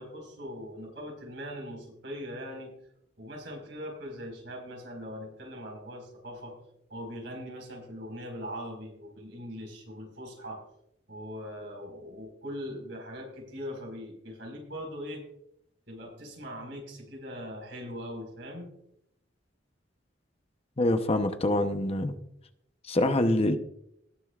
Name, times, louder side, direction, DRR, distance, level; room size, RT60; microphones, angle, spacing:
voice 1, 0.0-2.7 3.2-6.5 6.9-10.6 11.1-15.2 15.9-18.7, equal, 70° right, 0 dB, 4.9 m, -41 dB
voice 2, 20.8-22.1 22.9-23.6, left 1 dB, 35° left, 7 dB, 0.9 m, -25 dB
19.5 x 9.9 x 2.4 m, 0.78 s
head